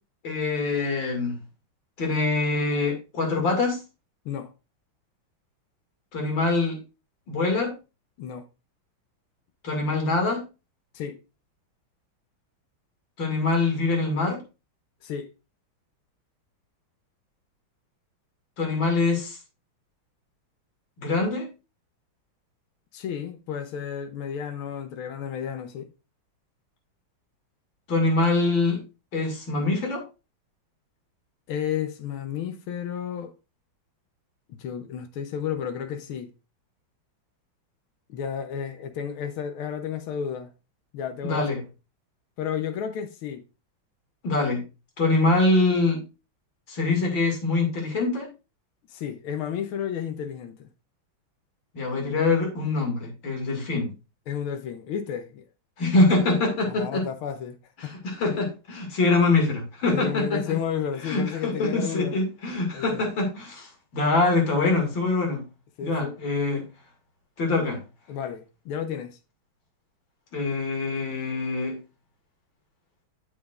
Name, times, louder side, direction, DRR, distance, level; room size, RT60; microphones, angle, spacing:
voice 1, 0.2-1.4 2.0-3.8 6.1-6.8 7.3-7.7 9.6-10.4 13.2-14.4 18.6-19.4 21.0-21.5 27.9-28.8 29.1-30.0 41.2-41.6 44.2-44.6 45.0-46.0 46.7-48.3 51.7-53.9 55.8-57.0 57.8-60.4 61.0-65.4 65.8-66.6 67.4-67.8 70.3-71.8, left 3 dB, 65° left, 3.0 m, -24 dB
voice 2, 22.9-25.9 31.5-33.3 34.5-36.3 38.1-40.5 40.9-41.6 42.4-43.4 48.9-50.7 54.3-55.4 56.6-57.6 57.8-57.9 59.9-62.2 62.7-63.1 65.8-66.2 68.1-69.2, left 8 dB, 85° left, 1.7 m, -32 dB
8.3 x 7.4 x 2.5 m
omnidirectional pair, 2.2 m